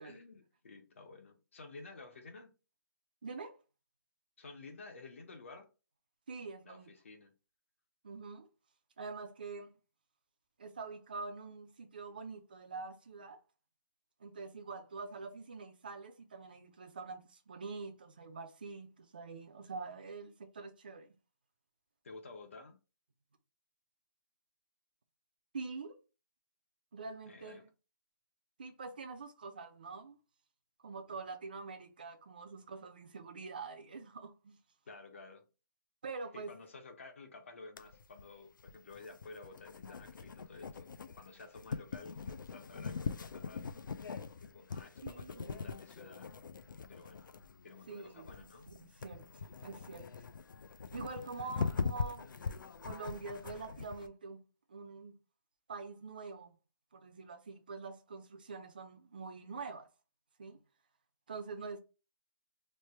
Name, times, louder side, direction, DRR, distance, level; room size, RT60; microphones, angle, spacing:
voice 1, 0.0-2.6 4.4-5.7 6.6-7.3 22.0-22.8 27.3-27.6 34.9-35.5 36.3-43.7 44.4-46.4 46.9-47.3 47.6-48.7, left 3 dB, 40° left, 0.7 m, -52 dB
voice 2, 3.2-3.6 6.3-6.9 8.0-8.5 9.0-9.7 10.6-13.4 14.2-21.1 25.5-26.0 26.9-27.7 28.6-30.2 30.8-34.6 36.0-36.5 45.0-45.7 47.9-49.3 49.6-50.1 50.9-52.4 52.8-54.4 54.7-55.1 55.7-56.6 56.9-59.9 60.4-60.6 61.3-61.8, right 4 dB, 25° right, 0.3 m, -45 dB
sound 1, 37.8-54.1, left 5 dB, 70° left, 0.4 m, -42 dB
3.2 x 2.1 x 4.2 m
hypercardioid pair, 175°, 11 cm